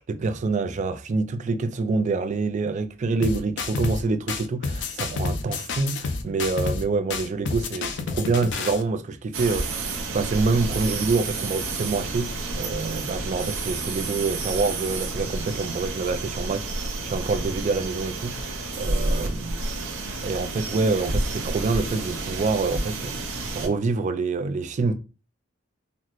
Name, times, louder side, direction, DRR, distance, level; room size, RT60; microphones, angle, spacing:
voice 1, 0.0-16.7 17.0-19.7 20.2-25.0, right 3 dB, 35° right, 0.3 m, -26 dB
sound 1, 3.2-4.0 4.3-6.8 7.1-8.8, left 4 dB, 60° left, 0.5 m, -29 dB
sound 2, 9.3-23.7, right 2 dB, 85° right, 0.8 m, -30 dB
4.0 x 2.1 x 2.9 m
head